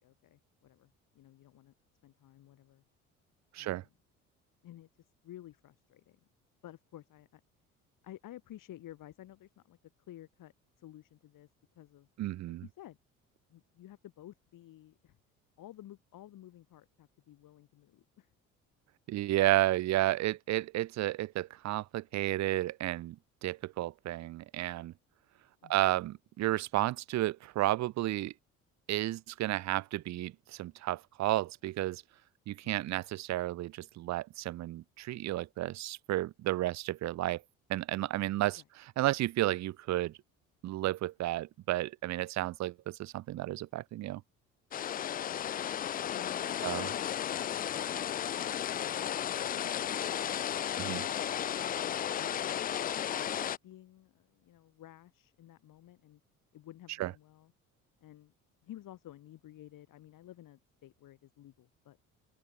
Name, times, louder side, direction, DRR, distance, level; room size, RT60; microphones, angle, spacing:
voice 1, 0.0-1.7 2.0-2.8 3.6-3.9 4.6-4.9 5.2-6.2 6.6-7.4 8.0-9.8 10.1-10.5 10.8-11.5 11.7-12.1 12.6-13.0 13.5-15.2 15.6-18.3 25.6-25.8 32.6-32.9 38.6-38.7 45.0-45.4 46.1-48.7 49.1-49.9 50.3-51.3 51.7-52.6 53.6-56.2 56.5-57.5 58.0-58.3 58.6-62.0, left 13 dB, 50° left, 4.9 m, -53 dB
voice 2, 12.2-12.6 19.1-24.9 25.7-28.3 28.9-32.0 32.5-37.4 37.7-40.2 40.6-44.2 46.6-46.9 50.8-51.0 57.0-57.1, right 15 dB, 40° right, 0.8 m, -32 dB
sound 1, 44.7-53.6, left 10 dB, 20° left, 0.4 m, -34 dB
open air
figure-of-eight pair, 55°, 41 cm